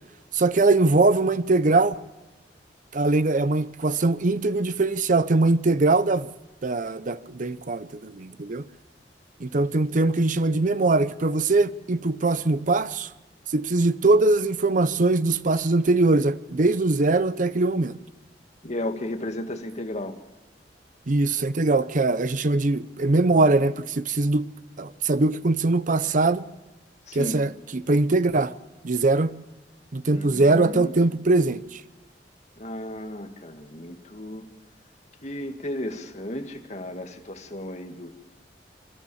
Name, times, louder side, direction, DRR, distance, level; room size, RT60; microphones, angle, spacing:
voice 1, 0.3-2.0 2.9-6.3 6.6-8.6 9.4-13.1 13.5-18.0 21.1-24.5 24.8-26.4 27.1-28.5 28.8-29.3 29.9-31.8, right 2 dB, 50° right, 0.7 m, -22 dB
voice 2, 18.6-20.1 27.1-27.4 30.1-30.9 32.6-34.5 35.2-38.1, left 1 dB, 40° left, 2.0 m, -34 dB
28.0 x 13.0 x 7.1 m
head